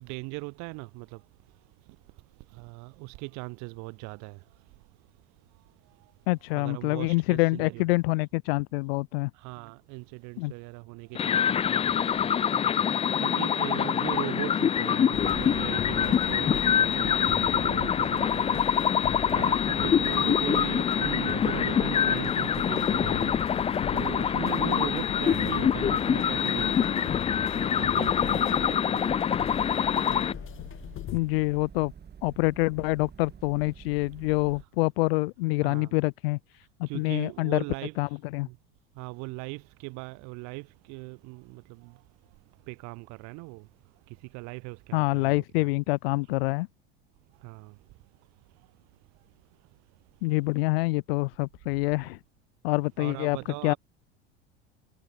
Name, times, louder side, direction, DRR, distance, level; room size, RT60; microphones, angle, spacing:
voice 1, 0.0-6.3 6.5-7.9 9.3-31.2 35.6-35.9 36.6-38.2 38.4-38.6 38.9-45.7 47.3-50.3 53.0-53.8, right 29 dB, 65° right, 5.0 m, -40 dB
voice 2, 6.3-9.3 10.4-10.5 31.1-31.9 32.2-36.4 36.8-37.6 38.0-38.1 38.3-38.5 44.9-46.7 50.2-52.2 52.6-53.4 53.6-53.7, left 24 dB, 70° left, 0.7 m, -26 dB
sound 1, 11.1-30.3, left 8 dB, 20° left, 0.4 m, -25 dB
sound 2, 15.1-31.2, left 11 dB, 40° left, 2.4 m, -40 dB
sound 3, 15.1-34.6, right 7 dB, 35° right, 6.3 m, -48 dB
hypercardioid pair, 80°, 30 cm